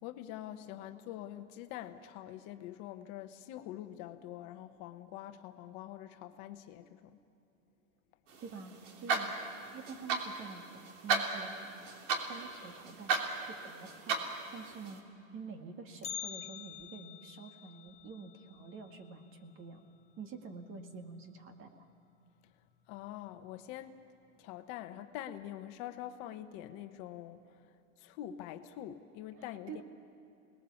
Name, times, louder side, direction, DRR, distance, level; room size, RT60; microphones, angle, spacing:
voice 1, 0.0-7.2 22.9-23.9 24.4-29.8, left 12 dB, 45° left, 8 dB, 1.1 m, -45 dB
sound 1, 8.3-15.0, right 4 dB, 65° right, 3.3 m, -36 dB
voice 2, 8.4-11.6 12.3-14.2 14.5-15.0 15.3-19.9 20.2-21.9 29.3-29.8, right 5 dB, 30° right, 6 dB, 2.0 m, -48 dB
Bell, 16.0-20.1 20.4-20.5 21.0-21.1 21.9-22.0 22.7-23.0 23.4-23.5, left 10 dB, 15° left, 0.6 m, -47 dB
27.5 x 20.0 x 7.1 m, 2.6 s
hypercardioid pair, 130°, 40 cm